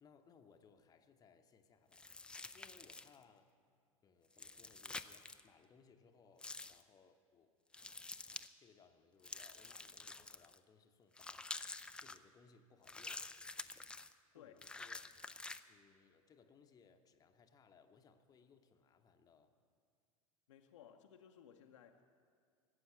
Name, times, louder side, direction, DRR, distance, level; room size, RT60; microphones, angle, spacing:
voice 1, 0.0-2.1 2.5-3.5 4.0-7.5 8.6-11.5 12.0-13.3 14.3-15.0 15.7-19.5, left 6 dB, 20° left, 6 dB, 0.8 m, -66 dB
sound 1, 1.9-3.2 4.3-5.4 6.4-6.8 7.7-8.5 9.2-10.6 11.2-12.2 12.8-14.1 14.6-15.6, left 3 dB, 5° left, 0.3 m, -49 dB
voice 2, 20.5-22.0, left 9 dB, 60° left, 3 dB, 0.7 m, -60 dB
17.0 x 7.9 x 7.4 m, 2.1 s
figure-of-eight pair, 80°, 17 cm